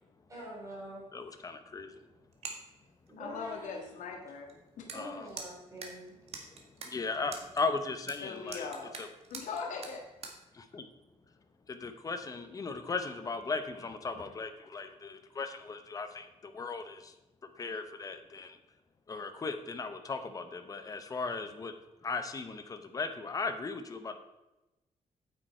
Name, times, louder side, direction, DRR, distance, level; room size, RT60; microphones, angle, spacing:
voice 1, 0.3-1.1 3.1-3.9 4.8-6.1, equal, 25° right, -5 dB, 4.1 m, -45 dB
voice 2, 1.1-2.0 4.9-5.3 6.5-8.7 9.0-9.1 10.5-10.9 11.7-17.1 17.4-18.6 19.1-21.7 22.0-24.2, left 4 dB, 30° left, 8 dB, 0.9 m, -37 dB
sound 1, 2.3-2.7 3.1-3.2 4.5-4.6 4.8-5.0 5.3-7.6 8.1-10.4, right 4 dB, 55° right, 1.7 m, -43 dB
voice 3, 3.2-4.5 4.8-4.9 8.2-8.9 9.3-10.0, left 5 dB, 85° left, 1 dB, 1.5 m, -40 dB
9.2 x 9.0 x 4.4 m, 0.99 s
wide cardioid pair, 165°, 13 cm